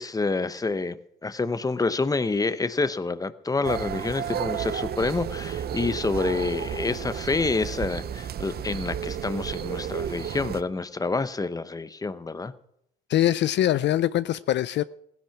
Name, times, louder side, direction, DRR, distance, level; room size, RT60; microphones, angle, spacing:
voice 1, 0.0-12.5, left 3 dB, 20° left, 0.9 m, -28 dB
sound 1, 3.6-10.6, right 9 dB, 55° right, 0.6 m, -32 dB
voice 2, 13.1-14.8, left 12 dB, 65° left, 0.4 m, -23 dB
16.5 x 10.5 x 5.9 m
cardioid pair, 90°, 20 cm